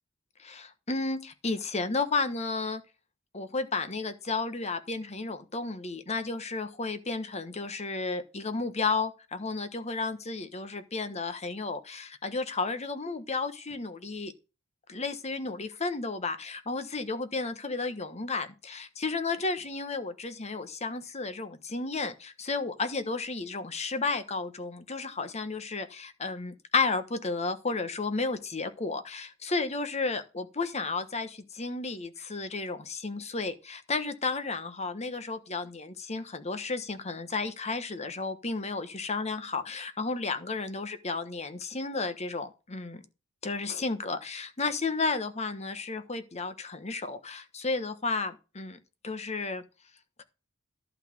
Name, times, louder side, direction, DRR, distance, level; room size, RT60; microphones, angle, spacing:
voice 1, 0.4-2.8 3.3-14.3 14.9-43.0 43.4-49.6, left 3 dB, 35° left, 1.2 m, -33 dB
11.5 x 4.2 x 7.2 m
head